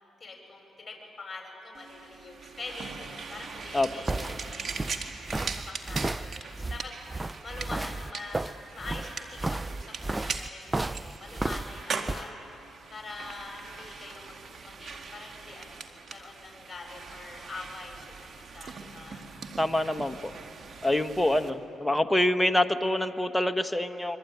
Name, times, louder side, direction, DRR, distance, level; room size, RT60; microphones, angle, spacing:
voice 1, 0.2-4.9 5.5-12.3 12.9-19.2, left 3 dB, 25° left, 1 dB, 7.4 m, -44 dB
sound 1, 1.7-21.5, right 5 dB, 55° right, 2.0 m, -41 dB
sound 2, 3.6-12.3, right 2 dB, 20° right, 0.5 m, -33 dB
voice 2, 19.6-20.3 20.8-24.2, left 1 dB, 5° left, 8 dB, 1.3 m, -26 dB
25.0 x 24.0 x 9.5 m, 2.8 s
cardioid pair, 75°, 0 cm